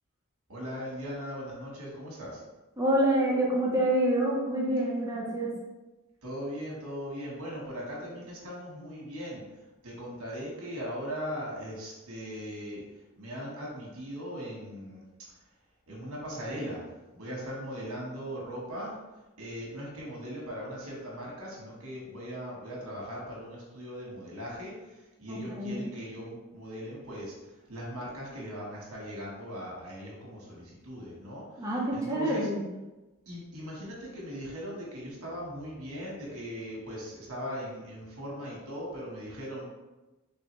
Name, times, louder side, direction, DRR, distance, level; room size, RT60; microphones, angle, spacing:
voice 1, 0.5-2.4 6.2-9.4 9.8-12.8 13.2-15.0 15.9-16.8 17.1-19.0 19.4-27.4 27.7-32.5 33.3-39.7, equal, 75° right, -4 dB, 1.3 m, -39 dB
voice 2, 2.8-5.5 25.3-25.8 31.6-32.6, right 1 dB, 15° right, -4 dB, 0.9 m, -27 dB
3.9 x 3.5 x 3.1 m, 1.1 s
head